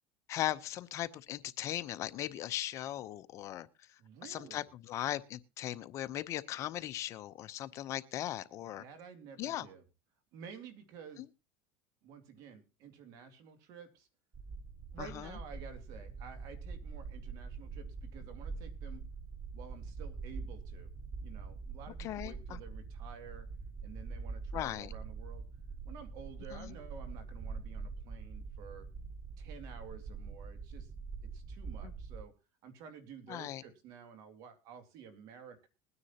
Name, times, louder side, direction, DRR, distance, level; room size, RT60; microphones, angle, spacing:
voice 1, 0.3-3.7 4.2-8.8 9.4-9.7 11.2-11.3 15.0-15.4 22.0-22.6 24.5-24.9 26.5-26.7 31.8-31.9 33.3-33.6, left 13 dB, 45° left, 0.7 m, -38 dB
voice 2, 4.0-4.6 8.8-9.8 10.3-11.2 12.0-14.1 14.9-19.0 19.5-20.9 21.2-23.5 23.8-25.4 25.8-28.9 29.4-30.9 31.2-32.3 32.6-35.7, right 6 dB, 60° right, 2.5 m, -51 dB
sound 1, 14.3-32.2, right 4 dB, 20° right, 0.6 m, -44 dB
21.0 x 9.7 x 2.9 m
supercardioid pair, 120°, 7 cm